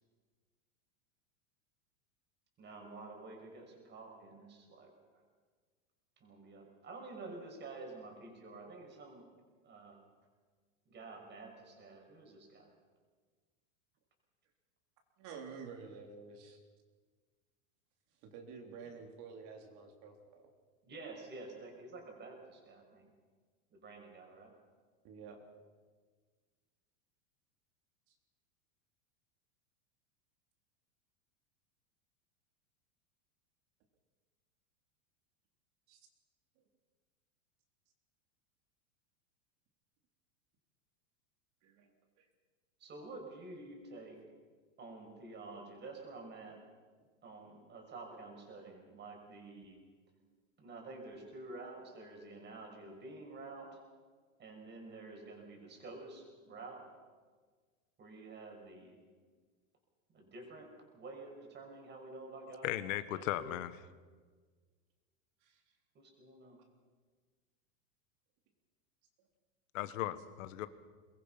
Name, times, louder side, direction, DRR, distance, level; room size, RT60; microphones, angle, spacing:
voice 1, 2.6-5.2 6.2-9.3 9.6-10.0 10.9-12.7 20.8-23.1 23.7-24.5 42.8-44.2 44.8-46.6 47.2-49.8 50.6-53.8 54.4-56.9 58.0-59.0 60.1-62.7 63.1-63.5 65.9-66.6, right 3 dB, 25° right, 2 dB, 6.0 m, -50 dB
voice 2, 15.2-16.6 18.2-20.2 25.0-25.4 35.9-36.0 41.6-41.9 42.2-42.3 65.4-65.6, right 5 dB, 45° right, 2 dB, 3.7 m, -49 dB
voice 3, 62.6-63.7 69.7-70.7, left 14 dB, 65° left, 13 dB, 1.5 m, -37 dB
23.5 x 21.5 x 5.8 m, 1.5 s
supercardioid pair, 140°, 41 cm